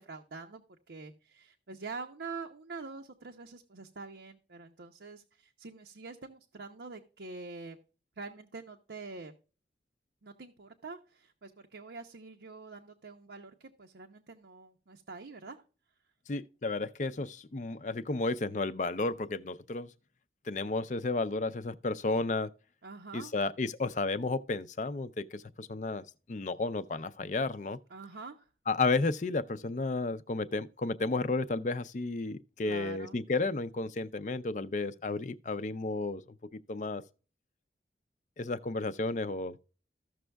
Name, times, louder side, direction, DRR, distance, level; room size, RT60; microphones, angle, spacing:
voice 1, 0.0-7.8 8.2-9.3 10.2-15.6 22.8-23.3 27.9-28.5 32.6-33.2, right 4 dB, 90° right, 0.8 m, -45 dB
voice 2, 16.3-19.9 20.5-22.5 23.1-26.0 26.3-27.8 28.7-36.2 36.7-37.0 38.4-39.6, left 3 dB, 45° left, 0.5 m, -32 dB
15.0 x 6.2 x 2.2 m
head